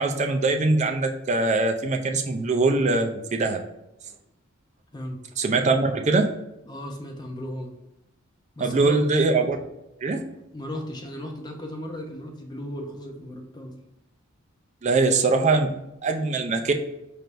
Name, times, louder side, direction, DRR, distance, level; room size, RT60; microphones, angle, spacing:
voice 1, 0.0-3.6 5.4-6.3 8.6-9.6 10.0-10.3 14.8-15.7 16.0-16.7, right 3 dB, 35° right, 4 dB, 0.4 m, -22 dB
voice 2, 6.6-7.7 8.5-9.2 10.5-13.7, left 1 dB, 20° left, 2 dB, 0.6 m, -36 dB
4.3 x 3.3 x 2.5 m, 0.91 s
head